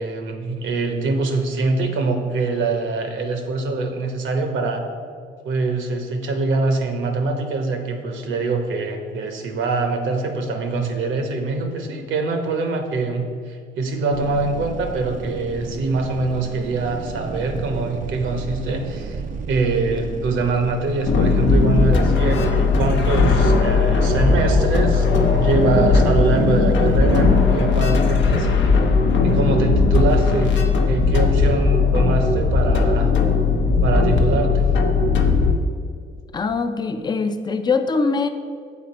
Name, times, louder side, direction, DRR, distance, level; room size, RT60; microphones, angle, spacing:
voice 1, 0.0-4.8 5.4-19.2 19.5-28.8 29.2-33.1 33.8-34.7, right 3 dB, 75° right, 5 dB, 0.9 m, -24 dB
sound 1, 14.1-27.0, right 5 dB, 45° right, 0.4 m, -32 dB
sound 2, 21.1-35.5, left 4 dB, 70° left, 0.7 m, -17 dB
voice 2, 36.3-38.3, left 4 dB, 20° left, 8 dB, 0.4 m, -22 dB
7.2 x 4.1 x 4.1 m, 2.1 s
cardioid pair, 90°, 20 cm